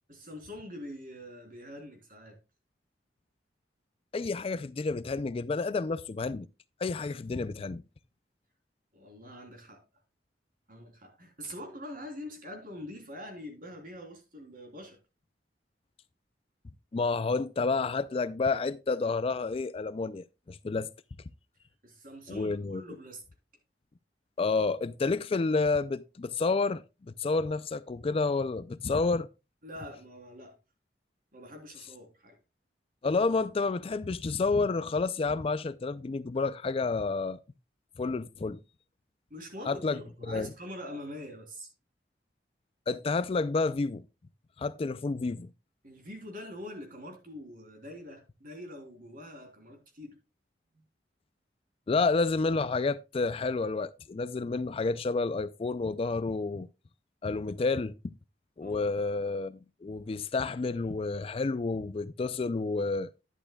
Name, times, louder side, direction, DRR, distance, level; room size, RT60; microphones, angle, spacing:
voice 1, 0.1-2.4 8.9-9.8 10.7-15.0 21.8-23.2 29.6-30.6 31.3-32.4 39.3-41.7 45.8-50.2 50.7-50.8 58.6-59.0, left 1 dB, 50° right, 3.3 m, -44 dB
voice 2, 4.1-6.5 6.8-7.8 16.9-20.9 22.3-22.8 24.4-26.8 27.2-29.3 33.0-37.4 38.0-38.6 39.7-40.0 40.3-40.5 42.9-44.0 44.6-45.5 51.9-56.7 57.2-57.9 58.6-63.1, left 3 dB, 35° left, 0.4 m, -30 dB
11.0 x 10.0 x 2.3 m
head